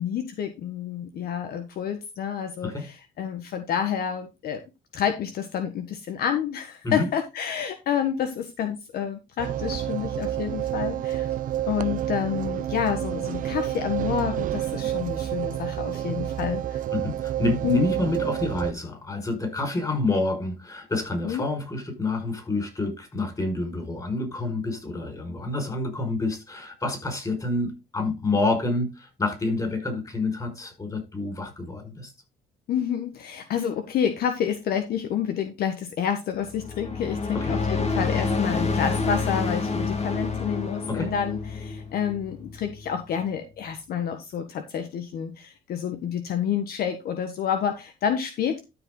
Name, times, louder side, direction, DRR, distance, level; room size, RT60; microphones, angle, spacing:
voice 1, 0.0-4.6 4.9-11.3 11.7-16.8 17.6-17.8 21.2-21.4 32.7-48.6, left 8 dB, 65° left, 1.4 m, -29 dB
sound 1, 9.4-18.7, right 12 dB, 55° right, 0.6 m, -29 dB
voice 2, 16.9-32.1 37.3-37.6 40.9-41.1, left 2 dB, 20° left, 5.5 m, -28 dB
sound 2, 36.4-43.0, left 4 dB, 40° left, 2.0 m, -28 dB
13.0 x 5.1 x 3.9 m
cardioid pair, 110°, 17 cm